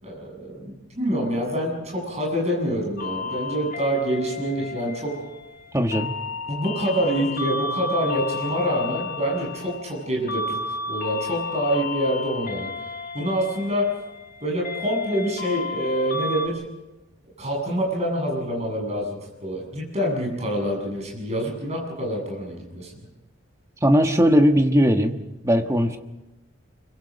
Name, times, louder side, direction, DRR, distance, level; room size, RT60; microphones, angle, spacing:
voice 1, 0.0-5.1 6.5-10.6 10.9-12.7 13.1-13.8 14.4-16.6 17.4-22.9, equal, 30° right, -1 dB, 7.8 m, -26 dB
sound 1, 3.0-16.5, left 3 dB, 40° left, 1.7 m, -33 dB
voice 2, 5.7-6.1 23.8-25.2 25.4-26.0, equal, 15° right, 5 dB, 1.4 m, -18 dB
25.5 x 24.0 x 5.3 m, 1.0 s
head